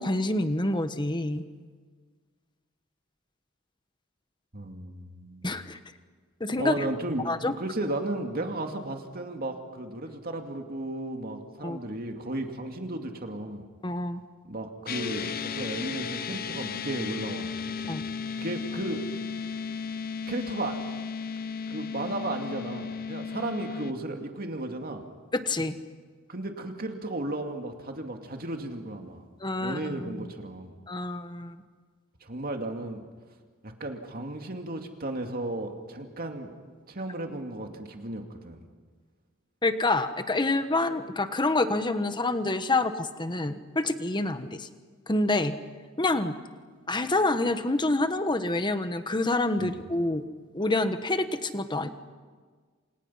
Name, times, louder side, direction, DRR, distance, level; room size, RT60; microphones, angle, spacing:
voice 1, 0.0-1.4 5.4-5.8 6.4-6.8 7.2-7.5 11.6-11.8 13.8-14.2 17.9-18.0 25.3-25.8 29.4-30.3 30.9-31.6 39.6-44.7 45.1-45.6 46.0-46.4 46.9-50.2 50.5-51.9, left 2 dB, 20° left, 10 dB, 1.3 m, -27 dB
voice 2, 4.5-5.5 6.6-13.6 14.5-18.0 18.4-19.0 20.3-20.8 21.7-25.0 26.3-29.2 29.6-30.8 32.2-33.0 33.6-36.5 36.9-38.6 49.6-49.8, right 2 dB, 45° right, 4 dB, 2.5 m, -34 dB
sound 1, 14.9-23.9, left 5 dB, 45° left, 0.8 m, -34 dB
28.0 x 28.0 x 5.8 m, 1.5 s
head